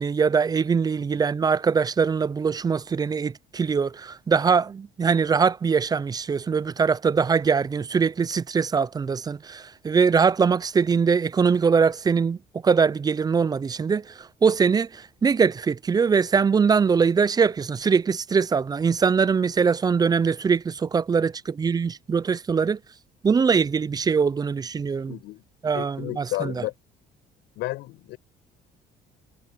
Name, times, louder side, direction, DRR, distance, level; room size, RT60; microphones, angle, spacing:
voice 1, 0.0-12.4 12.6-22.8 23.2-25.1 25.6-26.5, right 5 dB, 25° right, 0.4 m, -22 dB
voice 2, 25.1-25.4 25.7-26.7 27.6-28.2, left 18 dB, 90° left, 7.9 m, -32 dB
cardioid pair, 110°, 17 cm